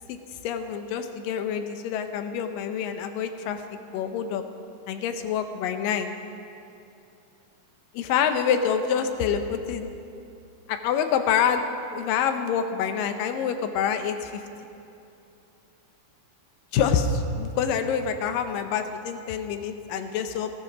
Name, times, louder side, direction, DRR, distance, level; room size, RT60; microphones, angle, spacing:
voice 1, 0.4-3.6 3.9-4.4 4.9-6.1 8.0-9.9 10.7-11.6 11.9-14.4 16.7-20.5, left 7 dB, 90° left, 7 dB, 2.5 m, -26 dB
15.0 x 13.5 x 5.0 m, 2.7 s
omnidirectional pair, 3.8 m